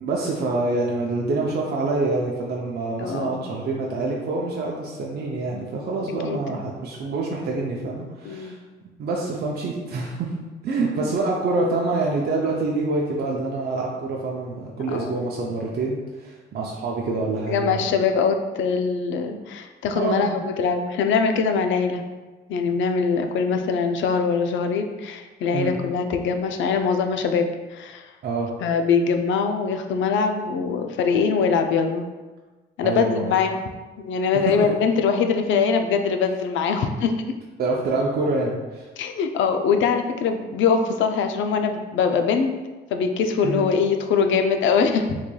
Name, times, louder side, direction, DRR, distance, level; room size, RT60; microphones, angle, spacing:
voice 1, 0.0-8.6 9.0-10.3 10.6-17.9 19.9-20.3 25.5-25.8 28.2-28.5 32.8-33.3 34.4-34.7 37.6-38.9 43.4-43.6, right 3 dB, 55° right, -2 dB, 0.5 m, -26 dB
voice 2, 3.0-3.4 6.2-6.4 8.2-8.5 14.9-15.2 17.5-22.0 22.5-28.1 28.6-32.1 32.8-33.6 34.0-37.2 39.0-42.5 42.9-45.1, left 5 dB, 75° left, 6 dB, 0.4 m, -22 dB
3.8 x 3.1 x 2.2 m, 1.2 s
cardioid pair, 90°, 20 cm